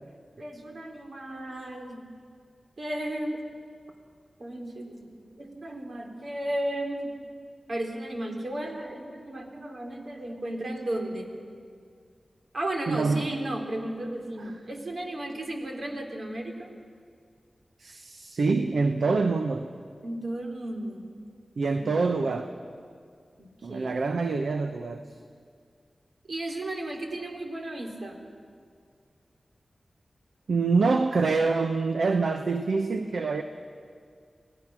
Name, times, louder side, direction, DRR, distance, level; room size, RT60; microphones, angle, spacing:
voice 1, 0.4-2.0 2.8-3.4 4.4-7.2 7.7-11.4 12.5-16.7 20.0-21.1 21.8-22.1 23.4-24.0 26.3-28.2, right 1 dB, 65° right, 1 dB, 3.2 m, -34 dB
voice 2, 12.9-13.3 14.4-14.5 17.8-19.7 21.6-22.5 23.6-25.0 30.5-33.4, right 4 dB, 80° right, 7 dB, 0.8 m, -26 dB
24.5 x 17.0 x 6.1 m, 2.2 s
cardioid pair, 45°, 0 cm